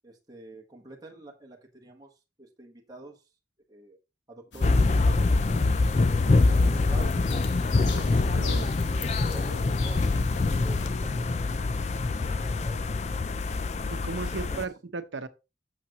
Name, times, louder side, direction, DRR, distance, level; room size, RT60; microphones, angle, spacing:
voice 1, 0.0-2.1 2.4-3.2 3.7-4.0 4.3-5.7 6.5-8.4 9.2-10.0 10.3-11.8 12.1-12.8 14.3-14.6, right 2 dB, 20° right, 1.4 m, -47 dB
sound 1, 4.5-10.9, left 4 dB, 80° left, 1.2 m, -41 dB
sound 2, 4.6-14.6, left 3 dB, 40° left, 0.4 m, -25 dB
voice 2, 7.9-8.7 9.0-9.2 13.9-15.3, right 4 dB, 85° right, 0.8 m, -37 dB
8.6 x 6.6 x 3.0 m
head